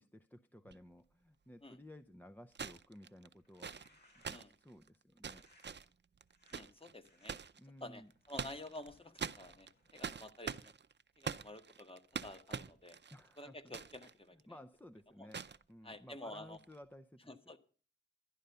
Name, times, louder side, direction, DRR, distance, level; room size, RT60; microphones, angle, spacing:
voice 1, 0.0-5.4 7.6-8.1 13.1-13.8 14.3-17.4, left 1 dB, 10° left, 8 dB, 0.5 m, -56 dB
sound 1, 0.6-0.7 2.5-7.6 8.1-8.9 9.2-14.1 14.4-14.5 15.3-15.6 16.5-16.7, right 6 dB, 60° right, 0.5 m, -44 dB
sound 2, 3.4-4.6 5.3-5.8 6.3-6.6 7.0-7.3 7.9-10.5, left 1 dB, 55° left, 4.2 m, -69 dB
voice 2, 6.5-7.3 7.8-10.7 11.2-13.0 13.4-14.4 15.2-15.3 15.8-16.6 17.3-17.6, left 1 dB, 25° left, 9 dB, 1.3 m, -50 dB
11.5 x 10.5 x 6.7 m, 0.41 s
wide cardioid pair, 75°, 20 cm